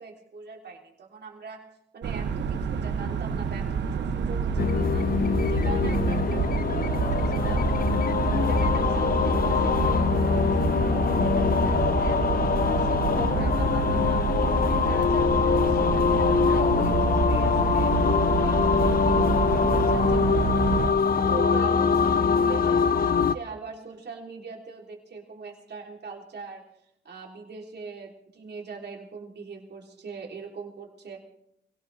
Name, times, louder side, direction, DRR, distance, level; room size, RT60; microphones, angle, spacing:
voice 1, 0.0-5.1 5.4-7.8 8.2-12.2 12.6-17.9 18.3-20.6 21.1-26.6 27.0-31.2, right 4 dB, 65° right, 0 dB, 3.3 m, -41 dB
sound 1, 2.0-20.9, right 6 dB, 85° right, 1.2 m, -28 dB
sound 2, 4.6-23.3, left 6 dB, 55° left, 0.7 m, -23 dB
22.5 x 17.5 x 3.4 m, 0.76 s
cardioid pair, 85°, 18 cm